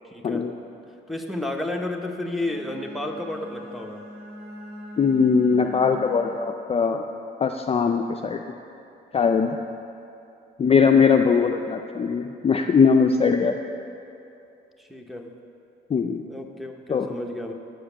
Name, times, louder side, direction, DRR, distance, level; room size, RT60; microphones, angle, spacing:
voice 1, 0.0-0.7 1.1-4.1 14.8-15.3 16.3-17.5, left 1 dB, ahead, 1 dB, 0.8 m, -32 dB
Bowed string instrument, 2.2-6.7, equal, 50° right, 1.8 m, -42 dB
voice 2, 5.0-7.0 7.4-8.4 9.1-9.6 10.6-13.6 15.9-16.3 16.9-17.1, left 5 dB, 30° left, 4 dB, 0.4 m, -20 dB
9.1 x 5.0 x 7.2 m, 2.7 s
cardioid pair, 90°, 20 cm